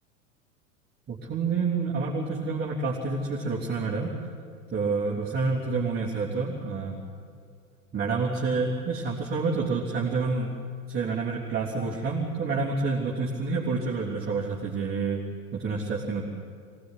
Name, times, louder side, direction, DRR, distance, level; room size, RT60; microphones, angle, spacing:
voice 1, 1.1-4.1 4.7-7.0 7.9-10.5 10.9-15.2 15.5-16.2, right 4 dB, 25° right, -4 dB, 3.2 m, -28 dB
24.0 x 18.0 x 10.0 m, 2.3 s
figure-of-eight pair, 90°, 41 cm